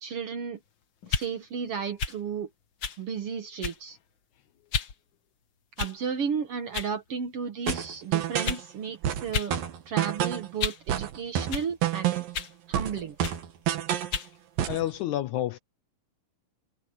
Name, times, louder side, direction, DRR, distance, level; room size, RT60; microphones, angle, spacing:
voice 1, 0.0-0.6 1.1-2.5 3.0-4.0 5.8-9.6 9.9-12.2 12.7-13.2, right 6 dB, 55° right, 1.8 m, -33 dB
sound 1, 1.0-1.3 2.0-2.2 2.8-3.0 3.6-3.9 4.7-4.9 5.8-6.1 6.7-6.9 7.6-7.8 8.4-8.7 9.3-9.5 9.9-10.9 11.5-11.7 12.3-12.6 13.2-13.4 14.1-14.3, left 6 dB, 50° left, 1.4 m, -32 dB
sound 2, 7.7-8.6 9.0-10.5 10.9-12.4 12.7-14.2 14.6-14.9, right 11 dB, 90° right, 3.4 m, -29 dB
voice 2, 14.7-15.6, left 13 dB, 75° left, 1.9 m, -29 dB
omnidirectional pair, 3.9 m